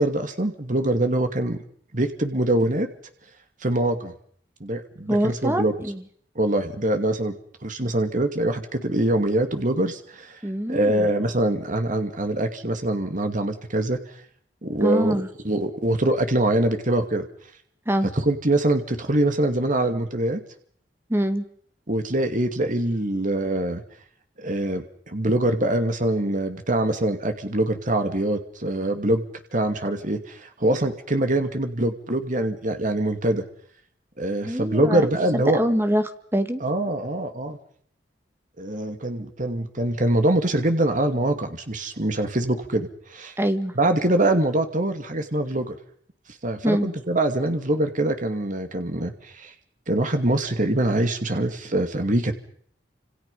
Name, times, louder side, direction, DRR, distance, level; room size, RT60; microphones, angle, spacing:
voice 1, 0.0-1.6 1.9-2.9 3.6-4.1 4.6-5.7 6.4-7.4 7.6-10.4 10.7-14.0 14.6-17.3 18.1-20.4 21.9-23.8 24.4-29.3 29.5-33.4 34.2-35.6 36.6-37.6 38.6-43.3 43.8-45.8 46.4-49.5 49.9-52.3, right 1 dB, 45° right, 7 dB, 2.5 m, -24 dB
voice 2, 5.1-6.0 10.4-11.1 14.8-15.3 17.9-18.1 21.1-21.4 34.4-35.1 35.3-36.6 43.4-43.7 46.6-46.9, equal, 15° right, 8 dB, 1.9 m, -24 dB
29.0 x 27.5 x 5.6 m, 0.62 s
head